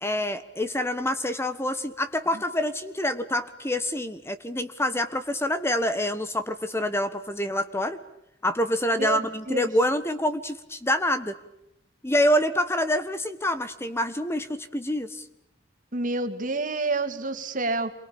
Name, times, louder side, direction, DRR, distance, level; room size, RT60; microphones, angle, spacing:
voice 1, 0.0-8.0 8.4-11.4 12.0-15.2, left 1 dB, 15° left, 11 dB, 1.4 m, -26 dB
voice 2, 9.0-9.7 15.9-17.9, right 3 dB, 45° right, 7 dB, 2.6 m, -28 dB
28.5 x 23.5 x 8.8 m, 0.80 s
head